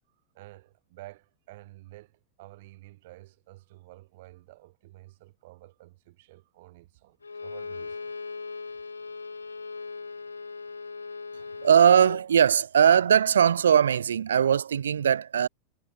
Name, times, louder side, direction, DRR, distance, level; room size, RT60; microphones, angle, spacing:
voice 1, 0.3-8.1, right 19 dB, 50° right, 2.6 m, -50 dB
Bowed string instrument, 7.2-12.3, left 4 dB, 75° left, 1.2 m, -38 dB
voice 2, 11.6-15.5, right 8 dB, 65° right, 0.8 m, -20 dB
figure-of-eight pair, 90°, 0 cm